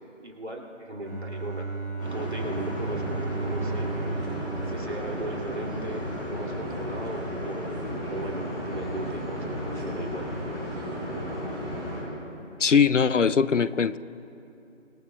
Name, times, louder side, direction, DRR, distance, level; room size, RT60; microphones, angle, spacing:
voice 1, 0.2-1.7 2.1-3.9 4.6-10.3, right 1 dB, 60° right, 0 dB, 2.5 m, -38 dB
Bowed string instrument, 1.0-6.0, right 3 dB, 45° right, 2.2 m, -34 dB
sound 1, 2.0-12.0, equal, 5° left, 3.1 m, -33 dB
voice 2, 12.6-14.0, left 6 dB, 75° left, 16 dB, 0.5 m, -21 dB
25.0 x 19.5 x 2.2 m, 2.8 s
figure-of-eight pair, 175°, 38 cm